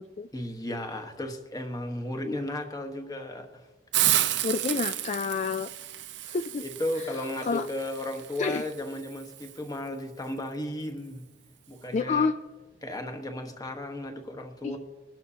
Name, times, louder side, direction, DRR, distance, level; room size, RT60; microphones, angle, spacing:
voice 1, 0.3-3.7 6.6-11.3 11.7-12.3 12.8-14.8, left 1 dB, 20° left, 4 dB, 1.3 m, -35 dB
Hiss, 3.9-9.6, right 13 dB, 70° right, 0.7 m, -31 dB
voice 2, 4.4-5.7 6.2-6.6 7.0-7.1 7.4-7.7 8.4-8.7 11.9-12.4 14.6-14.8, left 4 dB, 40° left, 10 dB, 0.3 m, -29 dB
22.0 x 12.0 x 2.8 m, 1.2 s
head